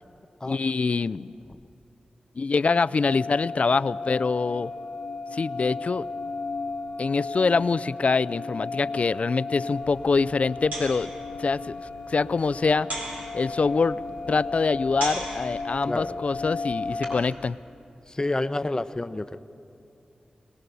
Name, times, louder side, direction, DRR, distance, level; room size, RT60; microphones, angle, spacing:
voice 1, 0.5-1.3 2.4-4.7 5.3-6.1 7.0-11.1 11.4-11.8 12.1-12.9 13.3-14.0 14.3-17.6, left 4 dB, 55° left, 16 dB, 0.4 m, -24 dB
sound 1, 3.0-17.2, left 3 dB, 80° left, 1.0 m, -35 dB
sound 2, 9.8-17.3, right 2 dB, 90° right, 4.3 m, -40 dB
voice 2, 15.9-16.2 18.1-19.4, left 2 dB, 25° left, 12 dB, 0.7 m, -29 dB
22.0 x 20.0 x 6.9 m, 2.7 s
cardioid pair, 55°, 3 cm